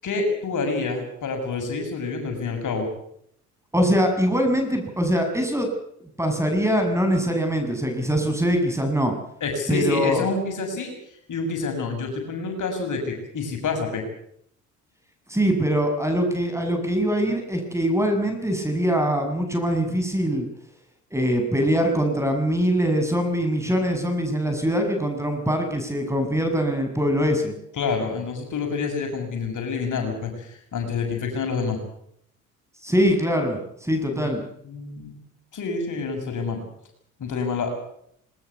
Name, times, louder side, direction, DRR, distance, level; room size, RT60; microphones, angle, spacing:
voice 1, 0.0-2.9 9.4-10.9 11.3-14.0 27.8-31.8 34.1-35.2 35.5-36.6 37.2-37.7, left 4 dB, 45° left, 3 dB, 7.0 m, -28 dB
voice 2, 3.7-5.7 6.2-9.1 9.7-10.3 15.3-20.5 21.1-27.5 32.8-34.4, equal, 5° right, 5 dB, 7.0 m, -23 dB
21.5 x 19.5 x 8.4 m, 0.71 s
hypercardioid pair, 55°, 41 cm